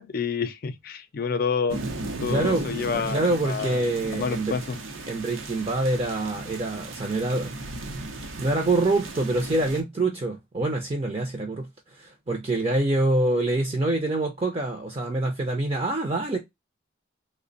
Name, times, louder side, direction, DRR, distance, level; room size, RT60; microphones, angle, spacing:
voice 1, 0.0-1.8 2.2-3.8 4.1-4.8, left 5 dB, 50° left, 0.4 m, -28 dB
sound 1, 1.7-9.8, right 2 dB, 90° right, 0.8 m, -36 dB
voice 2, 2.3-2.7 2.9-4.6 5.1-7.7 8.4-16.4, right 2 dB, 30° right, 0.5 m, -26 dB
3.2 x 2.1 x 3.8 m
head